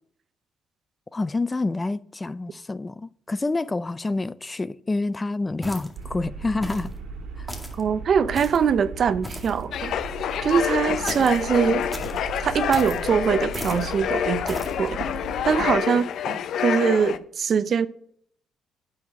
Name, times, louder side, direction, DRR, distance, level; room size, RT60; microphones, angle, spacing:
voice 1, 1.1-6.9 7.4-7.5, left 3 dB, 20° left, 0.4 m, -28 dB
sound 1, 5.6-6.1 6.6-6.9 7.5-7.8 8.3-8.7 9.2-9.6 11.1-11.4 11.9-12.2 12.7-13.0 13.5-13.9 14.5-14.8, equal, 5° left, 2.1 m, -36 dB
sound 2, 5.9-15.8, right 4 dB, 85° right, 1.9 m, -38 dB
voice 2, 7.8-10.0 10.4-11.8 12.4-15.0 15.5-17.9, right 7 dB, 55° right, 0.6 m, -23 dB
sound 3, 9.7-17.2, left 9 dB, 70° left, 0.5 m, -27 dB
9.5 x 4.9 x 7.4 m
cardioid pair, 90°, 0 cm